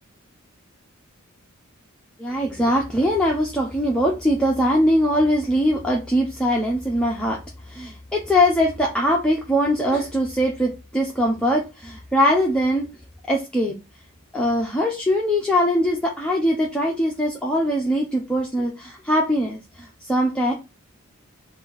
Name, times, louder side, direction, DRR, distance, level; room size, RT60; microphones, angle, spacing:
voice 1, 2.2-7.4 7.7-12.9 13.3-13.7 14.3-20.5, equal, 5° left, -2 dB, 0.5 m, -21 dB
3.9 x 2.6 x 4.6 m, 0.28 s
head